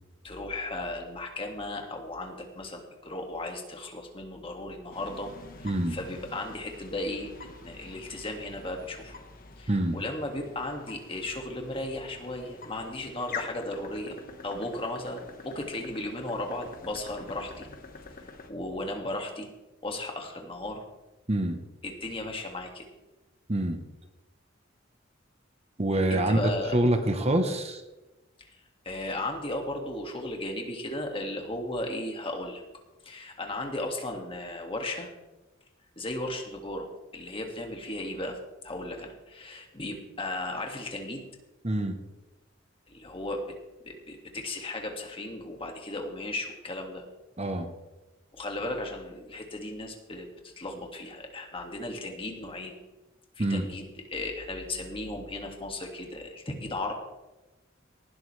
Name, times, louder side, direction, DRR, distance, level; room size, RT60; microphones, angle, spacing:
voice 1, 0.2-5.3 5.6-9.1 9.6-14.2 14.4-17.7 18.5-19.5 19.8-20.8 21.8-22.9 26.1-26.8 28.4-28.5 28.9-32.6 33.0-35.1 36.0-36.9 37.1-38.4 38.6-41.3 42.9-43.4 43.8-47.0 48.3-50.3 50.6-52.8 53.4-56.9, left 1 dB, 30° left, 2 dB, 2.1 m, -35 dB
sound 1, 4.9-18.5, left 4 dB, 45° left, 1.4 m, -46 dB
voice 2, 5.6-6.0 9.7-10.0 21.3-21.6 23.5-23.8 25.8-27.8 41.6-42.0 47.4-47.7 53.4-53.7, right 1 dB, 35° right, 7 dB, 1.0 m, -26 dB
18.5 x 12.0 x 3.3 m, 1.1 s
head